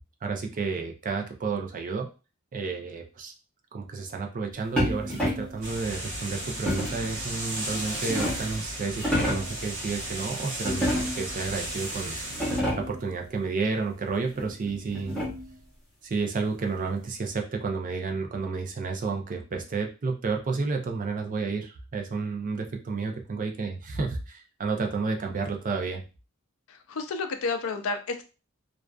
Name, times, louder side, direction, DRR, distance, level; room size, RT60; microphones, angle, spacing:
voice 1, 0.2-2.1 2.5-3.3 3.7-10.9 11.2-12.2 12.8-15.2 16.0-26.0, right 4 dB, 40° right, 3 dB, 0.4 m, -31 dB
sound 1, 4.8-5.6 6.7-7.1 7.7-8.6 8.9-9.6 10.6-11.4 11.9-12.0 12.3-13.0 14.4-15.6, equal, 5° left, 0.9 m, -29 dB
sound 2, 5.6-12.6, right 1 dB, 65° right, 0.9 m, -35 dB
voice 2, 26.7-28.2, left 4 dB, 70° left, 6 dB, 0.4 m, -31 dB
2.4 x 2.3 x 2.3 m, 0.32 s
head